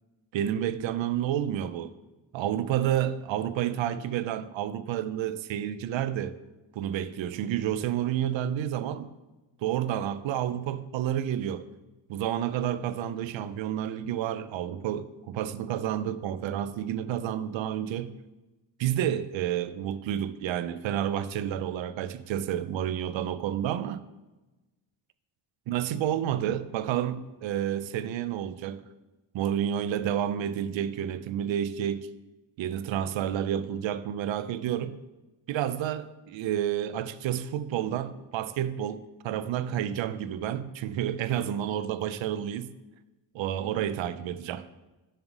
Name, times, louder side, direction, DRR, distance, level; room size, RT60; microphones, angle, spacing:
voice 1, 0.3-1.9 2.3-6.4 6.8-9.1 9.6-11.7 12.1-18.2 18.8-24.0 25.7-28.8 29.3-32.1 32.6-35.0 35.5-42.7 43.3-44.7, right 10 dB, 70° right, 0.6 m, -30 dB
7.2 x 3.5 x 6.0 m
cardioid pair, 80°, 48 cm